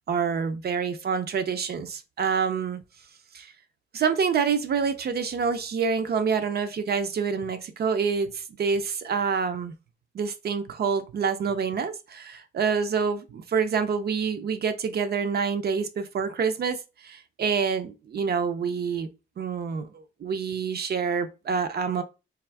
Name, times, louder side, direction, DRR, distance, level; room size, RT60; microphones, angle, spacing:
voice 1, 0.1-2.8 3.3-3.5 3.9-9.7 10.1-16.8 17.0-19.1 19.4-22.0, right 6 dB, 50° right, 0.5 m, -27 dB
3.5 x 3.3 x 3.4 m
wide cardioid pair, 165°, 20 cm